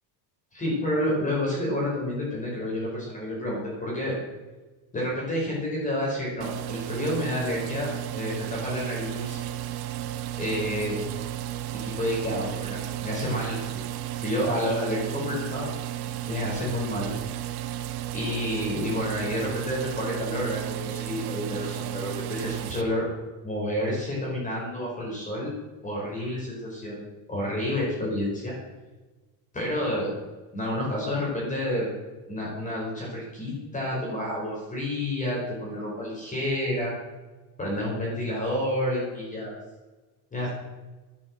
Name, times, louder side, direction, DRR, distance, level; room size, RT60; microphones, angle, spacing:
voice 1, 0.5-4.1 4.9-7.9 8.1-9.4 10.4-10.9 11.7-13.8 14.2-15.7 16.3-17.1 18.1-23.0 23.4-25.5 25.8-26.9 27.3-28.5 29.5-30.1 30.5-31.9 32.3-36.9 37.6-39.5 40.3-40.5, left 1 dB, 20° left, -4 dB, 4.7 m, -29 dB
sound 1, 6.4-22.8, right 13 dB, 60° right, 1.3 m, -33 dB
11.5 x 10.5 x 7.7 m, 1.2 s
cardioid pair, 165°, 42 cm